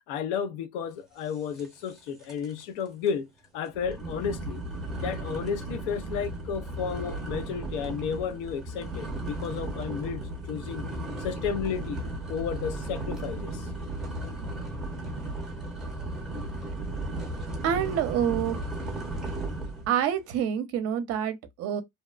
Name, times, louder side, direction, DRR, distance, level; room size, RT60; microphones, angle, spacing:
voice 1, 0.1-4.6 5.0-10.9 11.2-12.0 12.3-13.7, left 7 dB, 90° left, 0.6 m, -33 dB
sound 1, 1.6-2.6 3.1-3.2 3.7-19.9, right 1 dB, ahead, 0.7 m, -35 dB
voice 2, 17.6-18.6 19.9-21.8, right 9 dB, 45° right, 0.6 m, -27 dB
2.7 x 2.1 x 2.3 m
cardioid pair, 165°, 35 cm